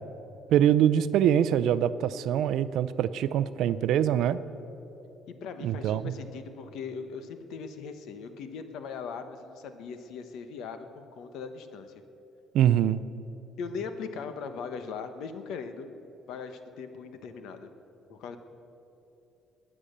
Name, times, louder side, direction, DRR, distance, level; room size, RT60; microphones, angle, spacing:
voice 1, 0.5-4.4 5.6-6.1 12.5-13.0, right 10 dB, 65° right, 14 dB, 0.5 m, -24 dB
voice 2, 5.3-11.9 13.6-15.9 16.3-17.7 18.1-18.4, left 5 dB, 70° left, 9 dB, 1.1 m, -39 dB
21.5 x 8.7 x 6.7 m, 3.0 s
cardioid pair, 170°, 0 cm